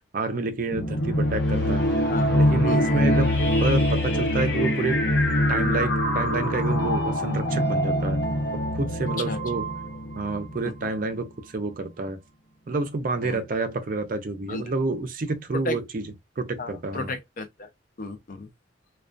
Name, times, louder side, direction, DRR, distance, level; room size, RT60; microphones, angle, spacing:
voice 1, 0.1-1.9 2.3-3.3 3.6-5.0 5.5-8.2 8.7-9.7 10.2-12.2 12.7-16.1 16.4-17.1, right 3 dB, 45° right, 0.4 m, -29 dB
sound 1, 0.7-10.9, left 1 dB, 65° left, 0.8 m, -24 dB
voice 2, 2.6-3.0 9.3-9.4 10.6-10.9 13.2-13.4 14.5-14.6 15.5-15.8 16.6-17.7 18.0-18.5, left 2 dB, 45° left, 0.4 m, -33 dB
2.3 x 2.2 x 2.4 m
head